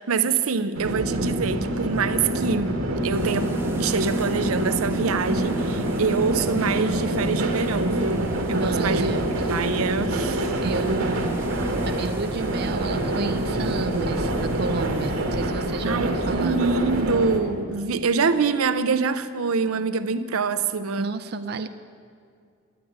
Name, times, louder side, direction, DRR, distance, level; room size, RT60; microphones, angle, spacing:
voice 1, 0.0-2.7 3.0-9.2 9.5-10.5 15.8-21.1, right 4 dB, 90° right, 12 dB, 0.6 m, -25 dB
sound 1, 0.7-17.4, right 1 dB, 75° right, 1.7 m, -26 dB
sound 2, 3.1-15.1, right 1 dB, 10° right, 0.9 m, -41 dB
voice 2, 8.6-9.2 10.6-11.4 11.8-16.6 21.0-21.7, right 4 dB, 50° right, 8 dB, 0.4 m, -31 dB
11.0 x 9.4 x 9.2 m, 2.3 s
head